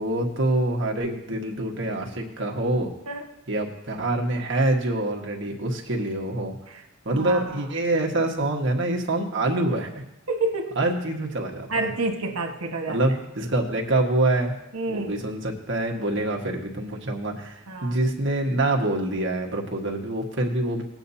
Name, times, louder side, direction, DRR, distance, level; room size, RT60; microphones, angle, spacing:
voice 1, 0.0-2.9 3.5-10.0 10.8-11.9 12.9-14.5 14.9-20.8, right 2 dB, 55° right, 1 dB, 1.6 m, -26 dB
voice 2, 7.1-7.6 10.3-10.8 11.7-13.0 14.7-15.2 17.7-18.0, right 2 dB, 85° right, 3 dB, 1.5 m, -29 dB
18.5 x 8.9 x 2.8 m, 0.86 s
head